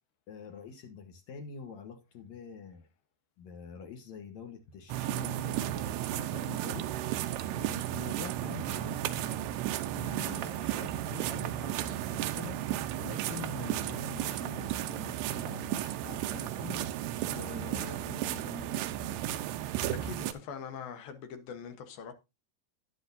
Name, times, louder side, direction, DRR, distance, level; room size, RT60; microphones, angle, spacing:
voice 1, 0.3-2.9 3.4-19.4, left 6 dB, 85° left, 1.6 m, -46 dB
sound 1, 4.9-20.3, right 12 dB, 80° right, 2.8 m, -34 dB
voice 2, 19.8-22.1, left 7 dB, 65° left, 2.8 m, -43 dB
12.5 x 10.5 x 2.7 m
omnidirectional pair, 4.9 m